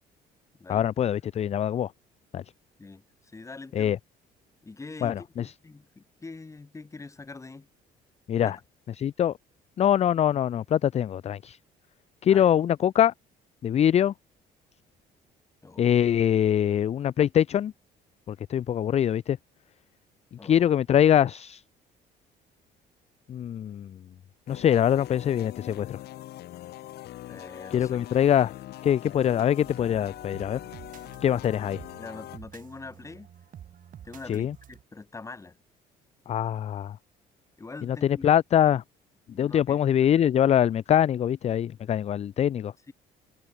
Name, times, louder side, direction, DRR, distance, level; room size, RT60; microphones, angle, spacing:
voice 1, 0.7-1.9 2.3-2.4 3.7-4.0 5.0-5.5 8.3-8.6 9.0-9.3 9.8-11.6 12.2-13.1 13.6-14.1 15.8-17.7 18.3-19.4 20.4-21.6 23.3-24.0 24.5-26.0 27.7-28.5 28.8-30.6 31.2-31.8 34.3-34.5 36.3-37.0 37.9-38.8 39.4-42.7, left 10 dB, 40° left, 0.5 m, -23 dB
voice 2, 2.8-3.9 4.6-7.7 8.4-8.6 12.3-12.5 15.6-15.9 20.4-20.6 27.3-28.0 29.1-29.3 32.0-33.3 34.0-35.6 37.6-38.2 39.3-39.8 42.9-43.0, left 3 dB, 20° left, 2.0 m, -44 dB
sound 1, 24.5-32.4, left 14 dB, 75° left, 3.8 m, -42 dB
sound 2, 29.6-34.8, right 9 dB, 50° right, 4.1 m, -49 dB
cardioid pair, 110°, 17 cm